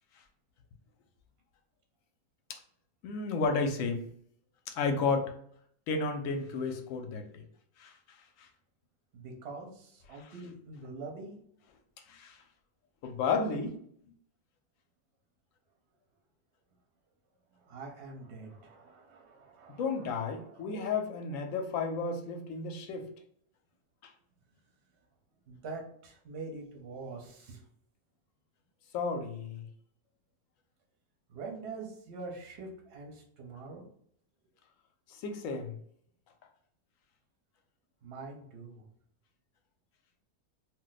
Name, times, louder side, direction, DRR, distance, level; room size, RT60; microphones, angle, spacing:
voice 1, 3.0-4.0 4.7-5.3 5.9-7.4 7.8-7.9 8.4-8.5 10.2-10.3 12.1-12.4 13.0-13.8 19.7-23.1 24.0-24.1 28.9-29.7 35.1-35.8, left 4 dB, 70° left, 5 dB, 0.9 m, -32 dB
voice 2, 9.1-11.3 17.5-21.5 25.5-27.6 31.3-33.8 38.0-38.8, right 3 dB, 55° right, 1 dB, 0.8 m, -45 dB
2.5 x 2.2 x 3.8 m, 0.65 s
omnidirectional pair, 1.6 m